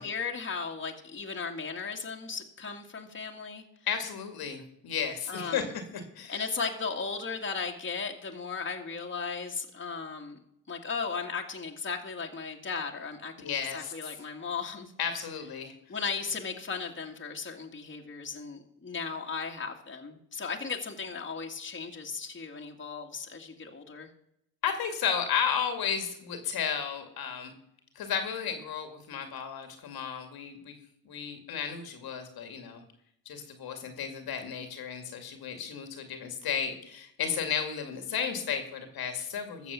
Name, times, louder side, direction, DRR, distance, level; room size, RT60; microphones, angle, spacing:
voice 1, 0.0-3.6 5.3-5.7 6.3-10.4 10.7-14.9 15.9-24.1, left 5 dB, 30° left, 2 dB, 2.1 m, -36 dB
voice 2, 3.9-5.6 6.2-6.5 13.4-13.9 15.0-15.7 24.6-27.5 28.0-30.7 31.1-32.8 33.3-39.7, left 7 dB, 65° left, 6 dB, 2.2 m, -33 dB
14.0 x 6.9 x 7.1 m, 0.74 s
supercardioid pair, 60°, 40 cm